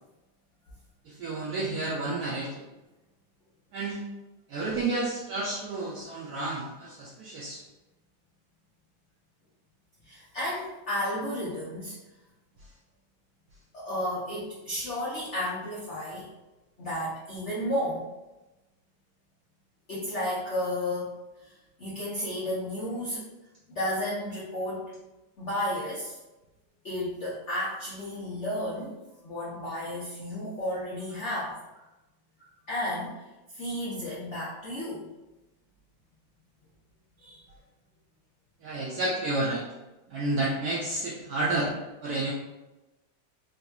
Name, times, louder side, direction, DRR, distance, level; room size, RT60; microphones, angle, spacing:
voice 1, 1.0-2.6 3.7-4.0 4.5-7.6 38.6-39.7 40.1-41.7 42.0-42.3, right 2 dB, 75° right, -4 dB, 0.9 m, -30 dB
voice 2, 10.0-12.0 13.7-16.3 16.8-18.1 19.9-21.1 21.4-23.2 23.7-24.9 25.4-26.2 26.8-28.9 29.2-31.6 32.7-33.2 33.5-35.1 37.2-37.4, left 1 dB, 75° left, -7 dB, 0.6 m, -32 dB
3.8 x 2.8 x 2.3 m, 1.0 s
omnidirectional pair, 2.1 m